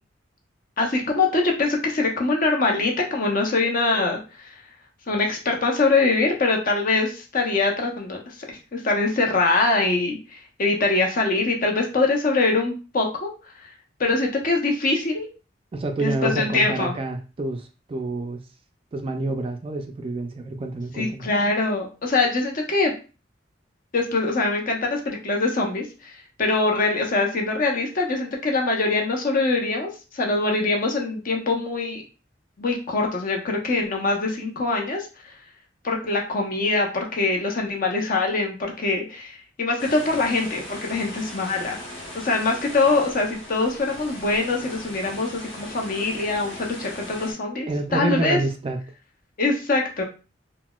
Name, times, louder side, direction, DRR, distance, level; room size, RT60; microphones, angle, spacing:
voice 1, 0.8-4.5 5.1-8.4 8.7-13.3 14.0-15.3 16.0-16.9 21.0-22.9 23.9-26.1 26.4-32.0 32.6-35.1 35.8-41.8 42.1-48.4 49.4-50.0, left 3 dB, 50° left, 1 dB, 0.7 m, -23 dB
voice 2, 15.7-18.4 18.9-21.3 47.7-48.8, right 2 dB, 30° right, 6 dB, 0.3 m, -28 dB
sound 1, 39.8-47.3, left 1 dB, 75° left, 0.9 m, -39 dB
3.9 x 2.1 x 2.3 m, 0.34 s
head